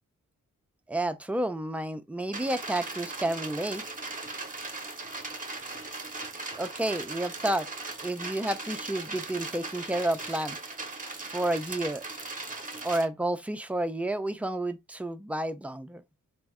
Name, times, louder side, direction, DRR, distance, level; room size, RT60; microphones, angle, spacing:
voice 1, 0.9-3.8 6.6-7.7 8.0-10.8 11.3-12.0 12.8-16.0, right 1 dB, 5° right, 0.4 m, -30 dB
sound 1, 2.3-13.0, right 3 dB, 25° right, 0.8 m, -38 dB
3.3 x 2.1 x 3.5 m
cardioid pair, 60°, 31 cm